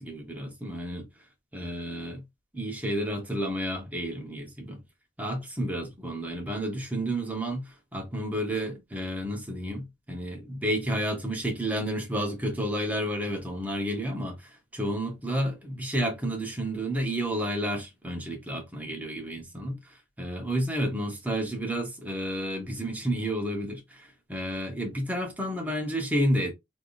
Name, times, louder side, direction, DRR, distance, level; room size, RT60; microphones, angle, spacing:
voice 1, 0.0-1.1 1.5-2.2 2.5-4.8 5.2-26.5, equal, 10° right, 0.9 m, -31 dB
3.4 x 2.6 x 2.4 m
head